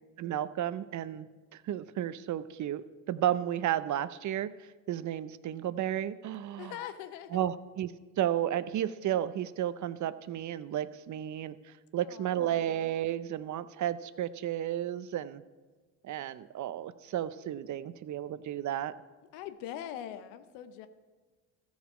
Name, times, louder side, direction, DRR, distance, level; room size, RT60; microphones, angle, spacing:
voice 1, 0.2-4.5 4.9-6.7 7.3-7.9 8.2-11.6 11.9-15.4 16.0-18.9, right 11 dB, 45° right, 15 dB, 0.6 m, -33 dB
voice 2, 6.6-7.4 11.9-12.6 19.3-20.9, left 11 dB, 85° left, 11 dB, 0.8 m, -42 dB
14.0 x 7.2 x 4.9 m, 1.3 s
supercardioid pair, 75°, 40 cm